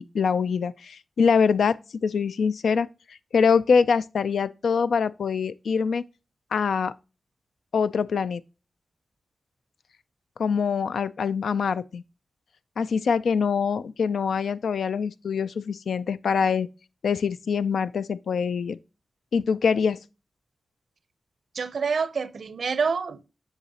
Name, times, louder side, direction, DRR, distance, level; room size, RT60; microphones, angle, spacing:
voice 1, 0.0-2.9 3.3-6.0 6.5-6.9 7.7-8.4 10.4-12.0 12.8-16.7 17.0-18.8 19.3-20.0, left 6 dB, 90° left, 0.3 m, -24 dB
voice 2, 21.5-23.3, right 5 dB, 75° right, 0.6 m, -27 dB
7.9 x 5.6 x 2.8 m
cardioid pair, 55°, 0 cm